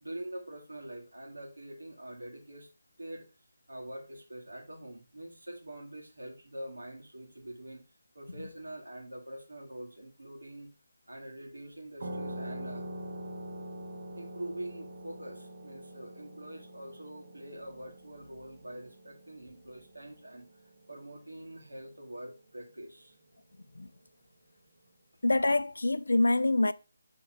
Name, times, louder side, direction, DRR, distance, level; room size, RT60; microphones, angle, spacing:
voice 1, 0.0-2.7 3.0-3.3 3.7-7.8 8.1-10.7 11.1-12.9 14.2-23.2, right 1 dB, 80° right, 2.1 m, -45 dB
sound 1, 12.0-21.2, right 1 dB, 55° right, 1.2 m, -44 dB
voice 2, 25.2-26.7, left 2 dB, 75° left, 0.4 m, -25 dB
5.7 x 3.8 x 5.0 m
figure-of-eight pair, 155°, 0 cm